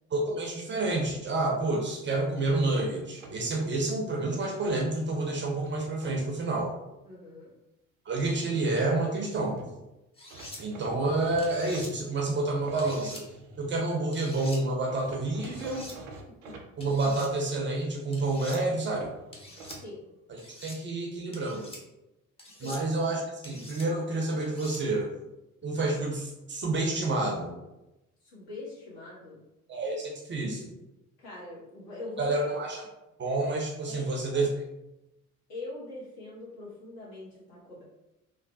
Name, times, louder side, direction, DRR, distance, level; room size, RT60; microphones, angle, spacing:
voice 1, 0.1-6.7 8.1-9.6 10.6-13.2 13.6-15.9 16.8-19.1 20.3-21.7 22.6-25.1 25.6-27.5 29.7-30.7 32.2-32.8 33.2-34.5, right 2 dB, 25° right, 0 dB, 0.5 m, -29 dB
sound 1, 2.4-3.8 4.4-5.1 5.6-6.2 9.3-9.4 9.6-9.7 10.3-13.8 14.9-16.6 18.9-19.8, right 3 dB, 75° right, 0.5 m, -47 dB
voice 2, 7.0-7.5 16.4-16.6 19.8-20.0 22.5-22.8 28.2-29.4 31.2-32.4 33.8-34.4 35.5-37.8, left 2 dB, 60° left, -6 dB, 1.2 m, -43 dB
sound 2, 10.2-10.6 11.4-11.9 12.8-13.2 14.1-14.6 15.4-16.0 16.8-17.3 18.1-18.6 19.3-19.8 20.4-20.8 21.3-21.8 22.4-22.8 23.4-23.9 24.4-24.8, left 1 dB, 15° left, 0.6 m, -45 dB
3.0 x 2.0 x 2.6 m, 0.94 s
figure-of-eight pair, 50°, 43 cm